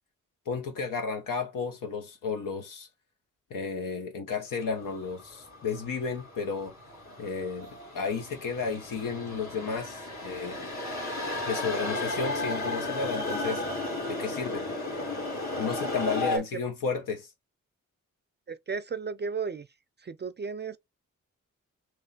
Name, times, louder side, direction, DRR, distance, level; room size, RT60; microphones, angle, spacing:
voice 1, 0.5-2.9 3.5-6.7 7.2-10.7 11.5-13.6 14.1-14.6 15.6-17.3, left 5 dB, 85° left, 0.9 m, -33 dB
sound 1, 4.7-16.4, left 2 dB, 60° left, 2.1 m, -34 dB
voice 2, 18.5-19.7 20.0-20.8, right 5 dB, 35° right, 0.4 m, -34 dB
3.2 x 3.1 x 3.9 m
cardioid pair, 55°, 32 cm